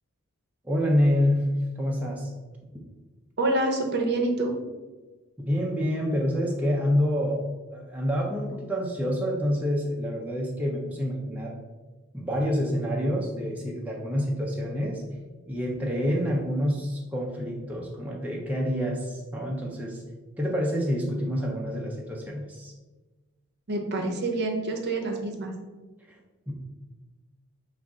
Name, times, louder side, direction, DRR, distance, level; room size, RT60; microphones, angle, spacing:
voice 1, 0.6-1.5 1.8-2.3 5.4-7.4 7.7-11.5 12.1-15.0 15.5-20.0 20.4-22.7 26.1-26.2 26.5-26.6, equal, 5° right, -2 dB, 0.4 m, -27 dB
voice 2, 3.4-4.5 23.7-25.5, right 2 dB, 50° right, 2 dB, 0.6 m, -27 dB
4.8 x 2.4 x 3.6 m, 1.2 s
head